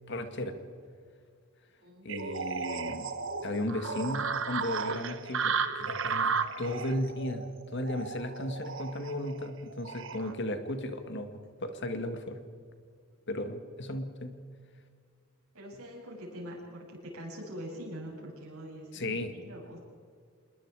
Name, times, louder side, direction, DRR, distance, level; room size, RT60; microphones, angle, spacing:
voice 1, 0.1-0.6 2.1-3.1 3.4-7.4 7.7-11.3 11.6-12.4 13.3-14.4 18.9-19.3, left 1 dB, 50° left, 8 dB, 1.8 m, -35 dB
voice 2, 1.8-2.1 10.7-10.9 13.2-13.3 15.5-19.8, equal, 75° right, -2 dB, 7.5 m, -44 dB
sound 1, 2.1-10.3, right 5 dB, 55° right, 1.1 m, -34 dB
27.0 x 21.5 x 4.8 m, 2.1 s
head